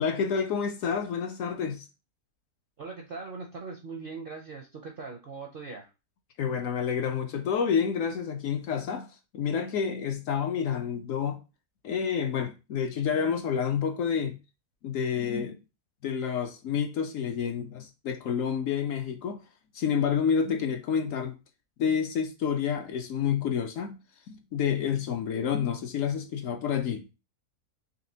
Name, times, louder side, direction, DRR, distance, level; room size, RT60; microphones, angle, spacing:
voice 1, 0.0-1.8 6.4-9.1 9.3-11.4 11.8-14.4 14.8-15.6 16.0-19.4 19.7-21.4 21.8-24.0 24.3-27.1, left 7 dB, 65° left, 0.9 m, -29 dB
voice 2, 2.8-5.9, right 4 dB, 55° right, 0.6 m, -40 dB
4.1 x 2.9 x 2.7 m
omnidirectional pair, 1.6 m